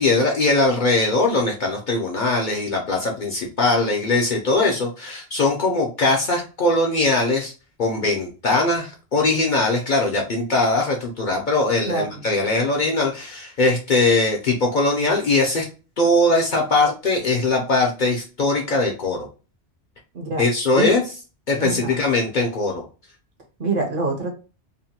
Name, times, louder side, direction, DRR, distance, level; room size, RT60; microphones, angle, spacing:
voice 1, 0.0-7.5 7.8-15.7 16.0-19.3 20.4-21.0 21.5-22.8, left 2 dB, 55° left, 0 dB, 0.6 m, -21 dB
voice 2, 11.9-12.2 20.1-20.4 20.8-20.9 21.6-22.0 23.6-24.3, right 3 dB, 55° right, 2 dB, 0.8 m, -25 dB
2.8 x 2.2 x 2.7 m, 0.33 s
omnidirectional pair, 1.2 m